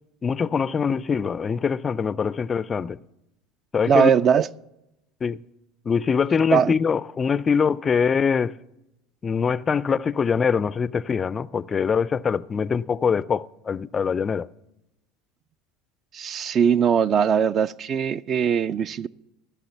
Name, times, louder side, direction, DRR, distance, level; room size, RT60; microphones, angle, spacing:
voice 1, 0.2-3.0 3.7-4.1 5.2-5.4 5.9-8.6 9.2-14.5, left 6 dB, 30° left, 0.3 m, -23 dB
voice 2, 3.9-4.5 6.5-6.7 16.1-19.1, right 7 dB, 40° right, 0.3 m, -20 dB
15.5 x 5.8 x 6.9 m
hypercardioid pair, 80°, 0 cm